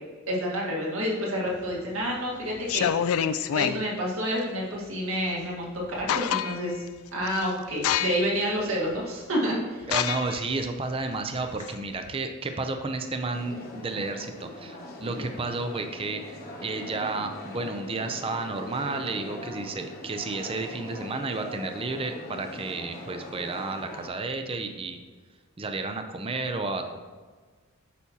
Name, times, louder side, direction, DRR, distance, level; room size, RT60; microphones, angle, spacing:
voice 1, 0.3-6.8 7.1-9.9 15.1-15.2, equal, 70° right, -3 dB, 1.9 m, -29 dB
sound 1, 1.6-2.1 2.6-3.8 5.4-5.5 5.8-6.8 7.2-7.4 7.8-8.4 8.9-9.0 9.8-12.1, left 9 dB, 75° left, 0.3 m, -27 dB
voice 2, 9.9-25.0 25.6-27.0, right 3 dB, 25° right, 6 dB, 0.4 m, -32 dB
sound 2, 13.3-24.1, left 1 dB, 45° left, 1.1 m, -41 dB
8.3 x 5.8 x 2.8 m, 1.5 s
head